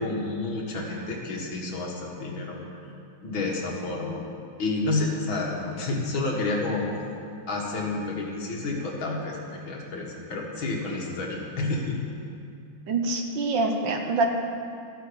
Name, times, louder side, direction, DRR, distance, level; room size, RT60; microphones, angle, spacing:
voice 1, 0.0-2.6 3.2-4.2 4.6-6.8 7.5-9.4 9.7-12.0, left 2 dB, 75° left, -1 dB, 2.6 m, -29 dB
voice 2, 12.9-14.3, right 3 dB, 65° right, 4 dB, 1.7 m, -25 dB
13.0 x 9.1 x 7.1 m, 2.5 s
omnidirectional pair, 2.2 m